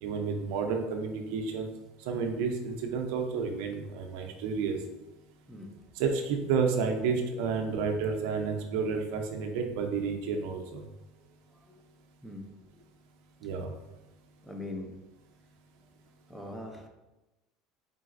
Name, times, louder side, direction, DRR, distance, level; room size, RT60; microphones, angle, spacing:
voice 1, 0.0-1.7 2.1-4.8 6.0-10.8 13.4-13.7, right 5 dB, 75° right, 4 dB, 0.6 m, -31 dB
voice 2, 5.5-5.8 11.5-11.8 12.2-12.5 12.7-12.9 14.4-15.0 16.3-16.9, left 1 dB, ahead, 3 dB, 0.6 m, -42 dB
4.0 x 3.9 x 2.5 m, 1.0 s
supercardioid pair, 105°, 0 cm